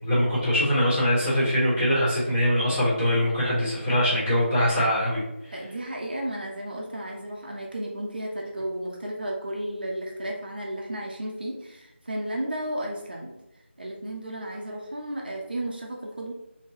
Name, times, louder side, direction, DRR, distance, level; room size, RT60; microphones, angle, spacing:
voice 1, 0.0-5.2, equal, 15° left, -12 dB, 1.2 m, -23 dB
voice 2, 5.5-13.3 13.8-16.3, right 1 dB, 50° right, -2 dB, 0.6 m, -33 dB
3.6 x 2.7 x 2.7 m, 0.91 s
figure-of-eight pair, 170°, 7 cm